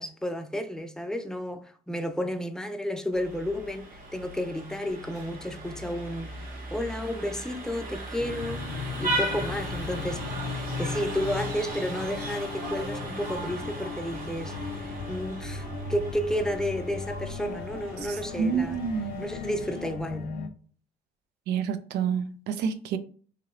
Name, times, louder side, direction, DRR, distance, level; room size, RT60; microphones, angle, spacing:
voice 1, 0.0-6.3 6.7-8.7 9.0-10.3 10.5-18.8 19.2-20.4, equal, 5° left, 0.4 m, -32 dB
Vehicle horn car horn honking, 3.1-19.9, right 1 dB, 55° right, 1.3 m, -37 dB
sound 1, 8.2-20.5, left 5 dB, 55° left, 0.5 m, -37 dB
voice 2, 18.1-19.2 21.5-23.0, right 7 dB, 80° right, 0.4 m, -29 dB
2.9 x 2.9 x 2.4 m
cardioid pair, 110°, 17 cm